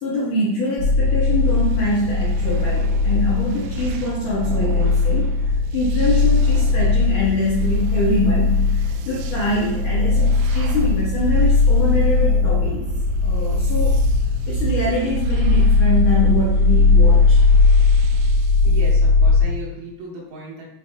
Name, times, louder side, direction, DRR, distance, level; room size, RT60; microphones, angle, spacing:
voice 1, 0.0-12.9 13.2-14.0 14.5-17.4, left 1 dB, 85° left, -6 dB, 1.8 m, -24 dB
sound 1, 0.8-19.4, left 3 dB, 50° right, 1.4 m, -18 dB
sound 2, 0.8-18.9, right 6 dB, 85° right, 2.7 m, -42 dB
voice 2, 18.6-20.6, right 2 dB, 70° right, -5 dB, 3.1 m, -35 dB
10.5 x 4.1 x 2.2 m, 0.80 s
omnidirectional pair, 5.7 m